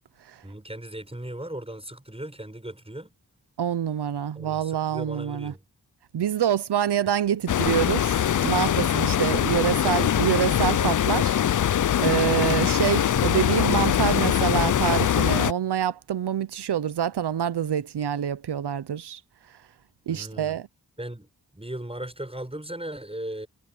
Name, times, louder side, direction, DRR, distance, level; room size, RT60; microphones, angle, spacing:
voice 1, 0.4-3.1 4.3-5.6 9.3-9.9 20.1-20.6 21.0-23.5, right 1 dB, 15° right, 6.8 m, -37 dB
voice 2, 3.6-5.5 6.1-8.1 8.4-11.4 12.0-19.2 20.1-20.7, right 10 dB, 80° right, 0.9 m, -26 dB
sound 1, 7.5-15.5, left 10 dB, 50° left, 0.5 m, -22 dB
cardioid pair, 50°, 40 cm